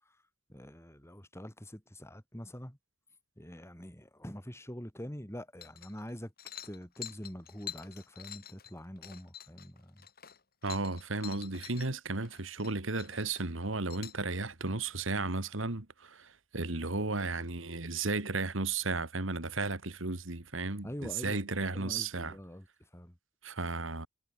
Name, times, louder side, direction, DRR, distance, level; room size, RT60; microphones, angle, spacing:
voice 1, 0.5-2.8 3.4-6.3 6.6-10.1 20.8-22.7 22.9-23.2, equal, 15° left, 6.1 m, -45 dB
sound 1, 5.6-6.1 6.4-11.9 12.2-12.7 13.0-14.2, left 10 dB, 50° left, 6.5 m, -47 dB
voice 2, 10.6-22.4 23.4-24.1, right 3 dB, 80° right, 2.1 m, -34 dB
head